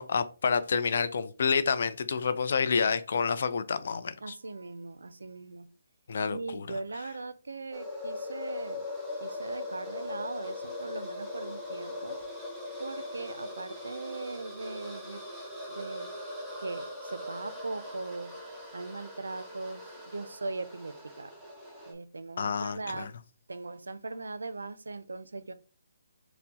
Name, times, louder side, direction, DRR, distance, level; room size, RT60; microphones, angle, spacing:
voice 1, 0.0-4.4 6.1-6.8 22.4-23.1, left 5 dB, 60° left, 0.4 m, -29 dB
voice 2, 4.2-5.7 6.3-8.9 9.2-12.2 12.8-15.2 15.7-16.1 16.6-18.3 18.7-21.3 21.9-23.1 23.5-25.5, right 3 dB, 85° right, 0.4 m, -39 dB
sound 1, 7.7-21.9, left 2 dB, 5° right, 0.8 m, -40 dB
4.3 x 2.1 x 2.7 m
hypercardioid pair, 155°, 0 cm